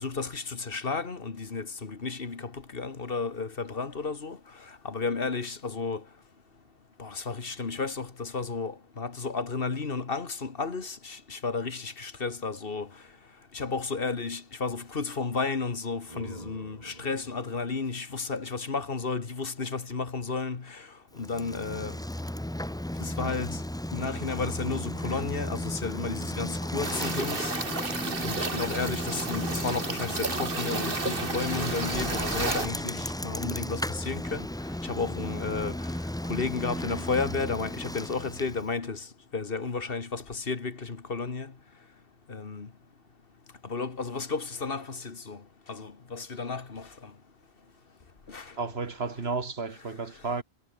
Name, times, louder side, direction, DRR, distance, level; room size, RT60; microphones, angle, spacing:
voice 1, 0.0-4.4 4.9-6.0 7.0-12.9 13.5-20.9 21.2-21.9 23.0-23.6 23.9-27.5 28.2-34.5 34.8-35.8 36.3-39.1 39.3-41.5 42.3-42.7 43.7-45.4 45.7-46.9 48.3-48.5, left 4 dB, 60° left, 1.9 m, -33 dB
sound 1, 16.0-19.4, right 1 dB, 35° right, 5.7 m, -49 dB
Bicycle, 21.2-38.7, left 1 dB, 5° left, 0.5 m, -34 dB
sound 2, 26.8-32.7, right 3 dB, 60° right, 2.5 m, -32 dB
voice 2, 48.6-50.4, right 4 dB, 75° right, 2.2 m, -32 dB
omnidirectional pair, 1.1 m